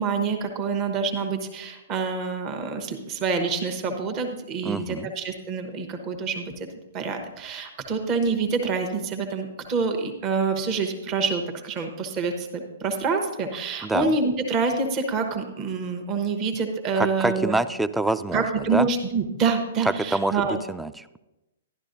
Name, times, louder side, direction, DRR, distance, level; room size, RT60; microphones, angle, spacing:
voice 1, 0.0-6.5 6.9-17.6 18.3-20.6, right 4 dB, 30° right, 5 dB, 1.1 m, -26 dB
voice 2, 4.6-5.1 13.8-14.1 17.0-18.4 18.7-18.9 19.8-21.2, right 2 dB, 5° right, 14 dB, 0.3 m, -26 dB
11.5 x 11.5 x 2.7 m, 0.99 s
figure-of-eight pair, 120°, 0 cm